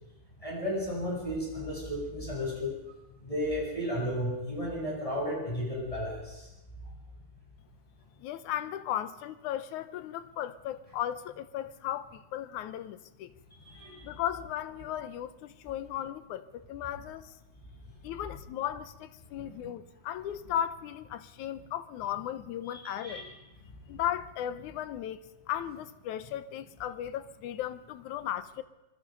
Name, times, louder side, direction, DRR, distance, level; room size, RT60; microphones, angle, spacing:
voice 1, 0.4-2.7 3.2-6.5 13.6-14.1 19.4-19.5 22.7-23.2, equal, 10° left, 7.8 m, -34 dB
voice 2, 8.2-13.3 14.0-17.3 18.0-23.2 23.9-25.2 25.5-28.6, left 11 dB, 85° left, 2.3 m, -36 dB
25.5 x 21.0 x 5.3 m
omnidirectional pair, 3.5 m